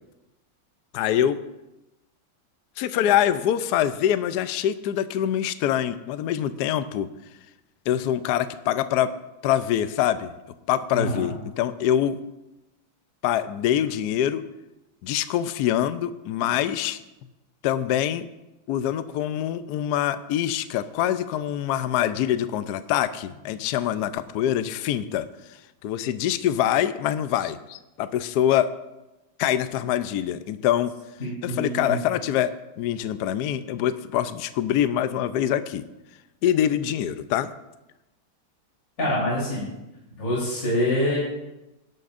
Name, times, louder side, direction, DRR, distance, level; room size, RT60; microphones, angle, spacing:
voice 1, 0.9-1.4 2.8-7.1 7.9-9.1 9.4-10.3 10.7-12.2 13.2-14.4 15.0-17.0 17.6-18.3 18.7-25.3 25.8-28.7 29.4-30.9 31.4-35.8 36.4-37.5, left 11 dB, 70° left, 12 dB, 0.9 m, -24 dB
voice 2, 10.9-11.3 31.2-32.0 39.0-39.6 40.1-41.2, left 1 dB, 45° left, -7 dB, 4.1 m, -25 dB
18.0 x 12.0 x 2.5 m, 0.98 s
omnidirectional pair, 2.2 m